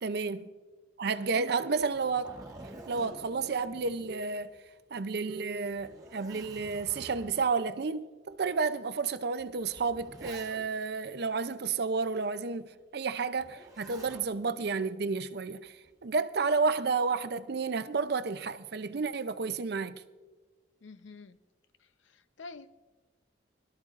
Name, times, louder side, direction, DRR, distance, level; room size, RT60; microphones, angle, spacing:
voice 1, 0.0-0.5 1.0-2.3 2.9-4.5 4.9-15.8 16.0-20.0, right 4 dB, 55° right, 0.5 m, -31 dB
Zipper (clothing), 1.8-4.7 5.1-5.2 5.7-7.5 8.3-8.4 9.4-10.9 13.4-14.3 15.7-16.1, right 2 dB, 20° right, 1.6 m, -49 dB
voice 2, 20.8-21.4 21.8-22.7, left 3 dB, 85° left, 0.6 m, -48 dB
22.0 x 12.5 x 2.5 m
head